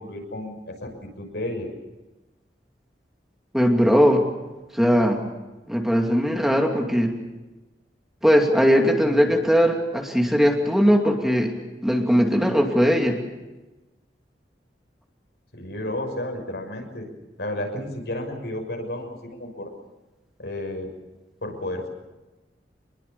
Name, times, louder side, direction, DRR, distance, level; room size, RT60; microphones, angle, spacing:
voice 1, 0.0-1.7 15.5-17.1 17.4-19.7 20.4-20.9 21.4-21.9, left 1 dB, 70° left, 3 dB, 6.4 m, -32 dB
voice 2, 3.5-4.2 4.7-5.2 5.7-7.1 8.2-11.5 11.8-13.2, equal, ahead, 1 dB, 2.6 m, -19 dB
27.0 x 21.5 x 7.0 m, 1.1 s
head